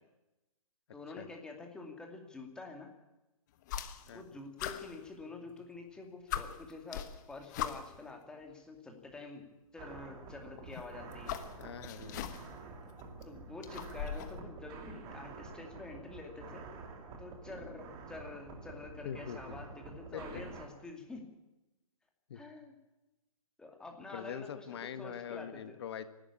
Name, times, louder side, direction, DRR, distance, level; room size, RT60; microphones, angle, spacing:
voice 1, 0.9-2.9 4.1-9.5 9.7-11.4 13.3-16.6 17.2-21.2 22.3-22.7 23.6-25.8, left 3 dB, 5° left, 2 dB, 2.4 m, -47 dB
sound 1, 3.6-4.3 4.6-5.7 6.0-6.1 6.3-8.1 9.1-9.2 10.6-12.6 13.0-14.4, left 10 dB, 30° left, 1.2 m, -41 dB
sound 2, 9.8-20.7, right 4 dB, 20° right, 2.6 m, -48 dB
voice 2, 11.6-12.2 19.0-19.6 19.9-20.4 22.3-22.4 24.1-26.0, left 8 dB, 45° left, 11 dB, 1.7 m, -43 dB
25.5 x 12.0 x 8.6 m, 1.0 s
hypercardioid pair, 155°, 18 cm